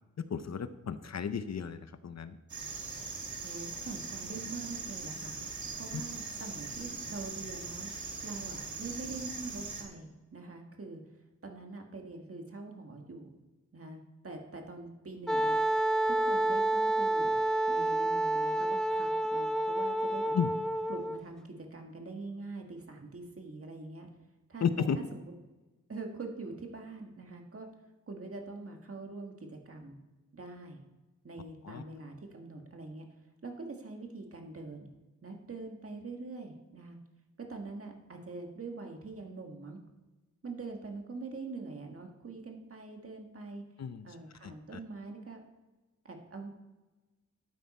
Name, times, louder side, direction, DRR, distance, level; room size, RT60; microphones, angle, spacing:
voice 1, 0.2-2.4 20.3-20.5 24.6-25.0 31.7-31.8 43.8-44.1 44.4-44.5, left 7 dB, 60° left, 12 dB, 0.7 m, -33 dB
sound 1, 2.5-9.8, right 4 dB, 70° right, 2.3 m, -41 dB
voice 2, 3.4-7.9 8.2-11.0 11.4-13.3 13.7-15.6 16.1-17.4 17.7-20.3 20.9-24.1 24.5-25.3 25.9-27.7 28.1-30.0 30.3-30.8 31.2-33.1 33.4-34.9 35.2-37.0 37.4-39.8 40.4-43.6 44.0-45.4 46.1-46.5, right 3 dB, 50° right, 2 dB, 1.8 m, -44 dB
Wind instrument woodwind instrument, 15.3-21.2, right 1 dB, ahead, 0.4 m, -29 dB
12.5 x 9.3 x 4.3 m, 1.2 s
wide cardioid pair, 135°, 30 cm